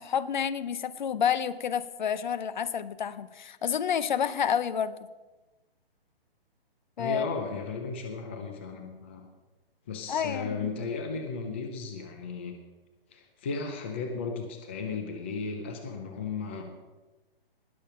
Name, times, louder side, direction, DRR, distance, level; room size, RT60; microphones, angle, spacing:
voice 1, 0.0-5.0 7.0-7.3 10.1-10.7, left 8 dB, 50° left, 0.8 m, -29 dB
voice 2, 7.0-9.3 9.9-12.5 13.1-16.6, left 4 dB, 10° left, 0.4 m, -35 dB
19.5 x 6.8 x 5.6 m
hypercardioid pair, 165°, 30 cm